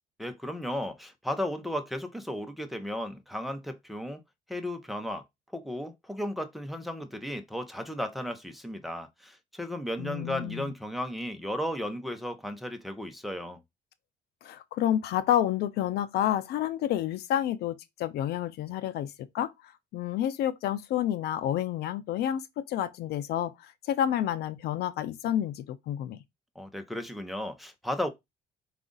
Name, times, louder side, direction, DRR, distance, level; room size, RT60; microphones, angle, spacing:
voice 1, 0.2-4.2 4.5-5.2 5.5-13.6 26.6-28.1, left 1 dB, ahead, 0.7 m, -35 dB
voice 2, 10.0-10.7 14.4-19.5 19.9-26.2, left 11 dB, 75° left, 0.5 m, -29 dB
4.8 x 2.5 x 3.8 m
cardioid pair, 110°, 17 cm